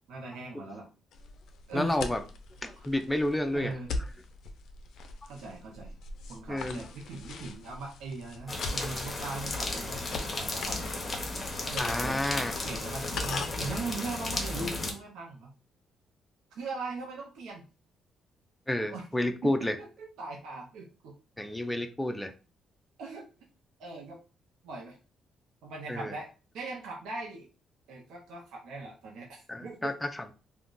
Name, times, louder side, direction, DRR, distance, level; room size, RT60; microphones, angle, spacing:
voice 1, 0.1-0.9 1.7-2.0 2.8-2.9 3.5-3.9 5.3-5.9 6.3-11.2 11.6-15.5 16.5-17.6 18.9-19.0 19.4-21.1 23.0-23.2 23.8-24.2 24.6-25.0 25.6-27.5 27.9-29.9, right 3 dB, 85° right, -2 dB, 0.6 m, -40 dB
sound 1, 1.1-13.7, left 3 dB, 75° left, 0.4 m, -42 dB
voice 2, 1.7-2.2 2.6-3.7 6.5-6.8 11.7-12.5 18.7-19.8 21.4-22.3 25.9-26.1 29.5-30.3, left 1 dB, 10° left, 6 dB, 0.4 m, -30 dB
sound 2, 8.5-14.9, left 2 dB, 30° left, 0.8 m, -34 dB
2.4 x 2.2 x 3.7 m, 0.34 s
cardioid pair, 90°, 0 cm